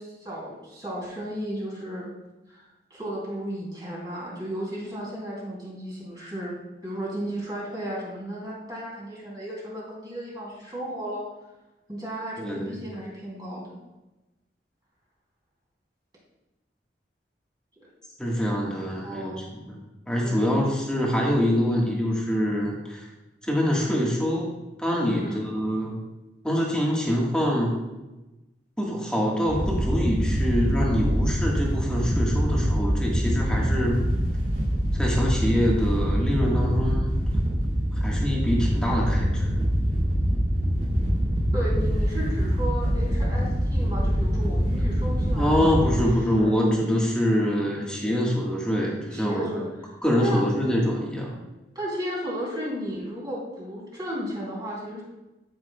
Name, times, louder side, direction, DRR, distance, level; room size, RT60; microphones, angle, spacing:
voice 1, 0.0-2.1 2.5-6.5 6.8-11.2 11.9-13.8 19.0-19.7 20.2-20.5 25.1-25.4 41.5-46.0 46.4-46.5 49.1-49.7 50.2-50.4 51.7-55.0, equal, 25° right, -5 dB, 3.0 m, -34 dB
voice 2, 12.4-12.8 18.2-19.8 20.1-23.1 23.4-24.5 24.8-26.0 26.4-27.7 28.8-34.0 34.9-37.1 38.0-39.6 45.3-49.6 50.0-51.3, equal, 5° left, -3 dB, 1.5 m, -25 dB
Wind / Boat Water vehicle, 29.5-46.0, equal, 70° right, 2.4 m, -24 dB
13.0 x 6.0 x 2.3 m, 1.0 s
head